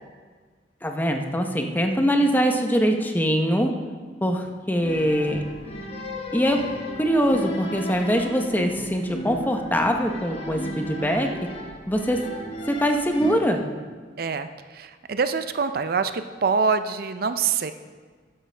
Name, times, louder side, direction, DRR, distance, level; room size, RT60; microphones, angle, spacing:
voice 1, 0.8-3.7 4.2-5.4 6.3-6.6 7.0-11.5 11.9-12.3 12.7-13.6, equal, 10° left, 4 dB, 0.8 m, -23 dB
sound 1, 4.8-13.4, equal, 35° left, 1.2 m, -35 dB
voice 2, 14.2-14.5 14.7-17.7, right 5 dB, 55° right, 10 dB, 0.5 m, -25 dB
13.0 x 10.0 x 3.4 m, 1.5 s
head